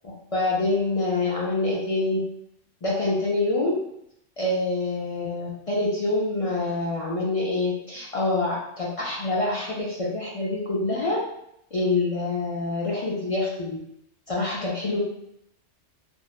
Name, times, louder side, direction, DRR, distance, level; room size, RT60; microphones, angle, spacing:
voice 1, 0.3-2.2 2.8-3.8 4.4-11.2 11.7-13.8 14.3-15.0, left 2 dB, 65° left, -4 dB, 0.3 m, -26 dB
3.0 x 2.1 x 2.3 m, 0.76 s
omnidirectional pair, 1.2 m